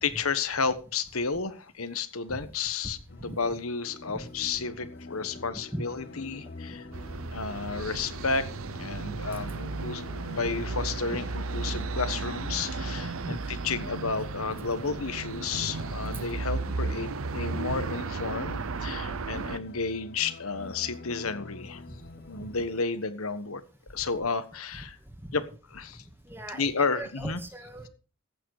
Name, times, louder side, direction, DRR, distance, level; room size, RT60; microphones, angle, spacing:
voice 1, 0.0-3.0 3.2-6.9 7.3-8.5 8.8-13.4 13.6-17.1 17.3-21.8 22.3-23.6 23.9-25.0 25.3-25.4 25.7-26.0 26.5-27.4, left 4 dB, 75° left, 12 dB, 1.4 m, -32 dB
sound 1, 3.1-22.8, left 3 dB, 50° left, 0.8 m, -48 dB
sound 2, 3.8-12.5, left 2 dB, 30° left, 2.6 m, -50 dB
sound 3, 6.9-19.6, right 3 dB, 70° right, 0.8 m, -34 dB
voice 2, 12.9-13.4 25.3-25.4 26.3-27.9, right 1 dB, 10° right, 6 dB, 2.1 m, -39 dB
14.5 x 9.0 x 4.9 m, 0.35 s
head